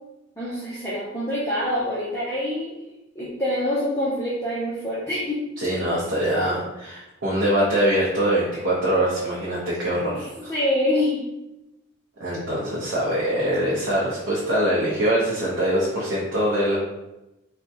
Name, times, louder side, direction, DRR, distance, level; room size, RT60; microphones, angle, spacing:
voice 1, 0.4-2.7 3.2-5.5 10.1-11.2, left 1 dB, 15° left, -9 dB, 0.4 m, -26 dB
voice 2, 5.6-10.5 12.2-16.8, right 1 dB, 75° right, -7 dB, 0.7 m, -23 dB
3.3 x 2.1 x 2.7 m, 0.96 s
head